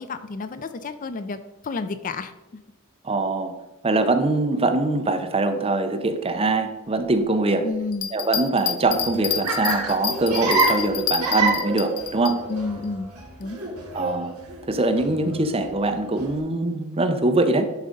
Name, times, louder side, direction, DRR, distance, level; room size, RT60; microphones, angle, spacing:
voice 1, 0.0-2.3 7.6-8.1 12.5-13.1 13.4-13.6, left 4 dB, 35° left, 11 dB, 0.4 m, -30 dB
voice 2, 3.0-3.5 3.8-7.7 8.1-12.4 13.9-14.4 14.7-17.7, right 2 dB, 25° right, 7 dB, 0.7 m, -23 dB
Bell, 7.9-12.3 12.8-12.9, left 9 dB, 75° left, 0.7 m, -28 dB
Laughter, 8.9-16.4, right 3 dB, 85° right, 2.8 m, -28 dB
10.5 x 3.8 x 5.2 m, 1.0 s
head